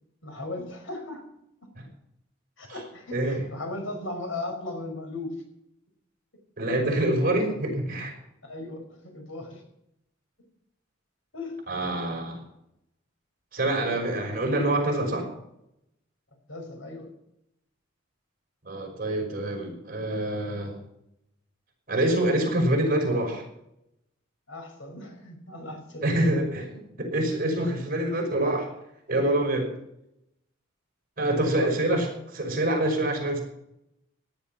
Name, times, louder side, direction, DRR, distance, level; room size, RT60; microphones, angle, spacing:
voice 1, 0.2-1.2 2.6-5.4 8.4-9.6 11.3-11.6 16.5-17.1 24.5-26.3 26.7-27.1 31.2-31.8, left 2 dB, 80° left, 4 dB, 5.4 m, -37 dB
voice 2, 6.6-8.1 11.7-12.4 13.5-15.3 18.6-20.8 21.9-23.4 26.0-26.7 27.0-28.7 29.1-29.7 31.2-33.4, right 1 dB, 45° right, 2 dB, 5.7 m, -26 dB
17.0 x 11.0 x 5.9 m, 0.80 s
head